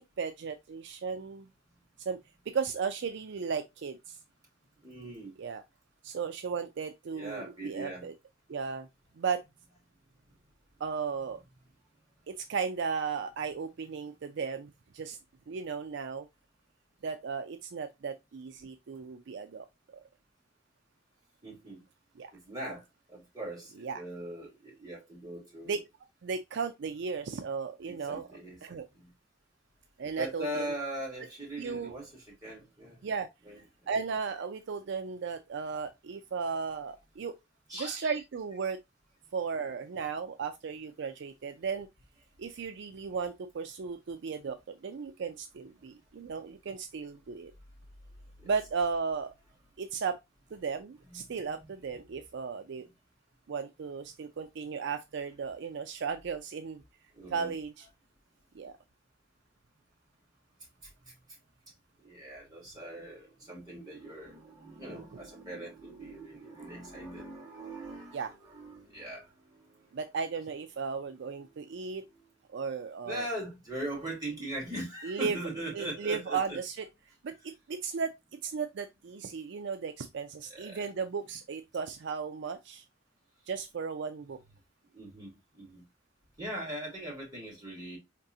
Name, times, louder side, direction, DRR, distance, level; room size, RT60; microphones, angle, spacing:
voice 1, 0.0-1.5 2.0-2.2 2.5-4.2 5.4-5.6 6.0-8.1 8.5-8.9 9.2-9.4 10.8-11.4 12.3-15.2 15.5-16.3 17.0-19.7 22.2-22.3 23.8-24.0 25.7-25.8 26.2-28.3 28.6-28.9 30.0-30.7 31.6-31.9 33.0-33.3 33.9-37.3 37.8-38.8 39.3-41.9 42.4-47.5 48.4-49.3 49.8-50.2 50.5-52.9 53.5-56.8 57.3-57.9 58.6-58.7 64.9-65.0 68.1-68.3 69.9-72.0 72.5-73.3 75.0-75.4 75.7-76.8 77.2-77.3 77.7-78.2 78.4-82.8 83.5-84.4, right 5 dB, 65° right, 0.4 m, -35 dB
voice 2, 4.8-5.3 7.1-8.1 21.4-21.8 22.3-22.8 23.1-25.8 27.9-29.1 30.2-33.0 33.4-33.9 37.7-38.2 48.4-48.5 51.1-51.4 57.1-57.5 61.0-61.1 62.0-70.0 72.1-72.2 73.0-76.6 80.5-80.9 84.9-85.8 86.4-88.0, right 1 dB, 20° right, 2.8 m, -41 dB
4.7 x 3.7 x 2.7 m
head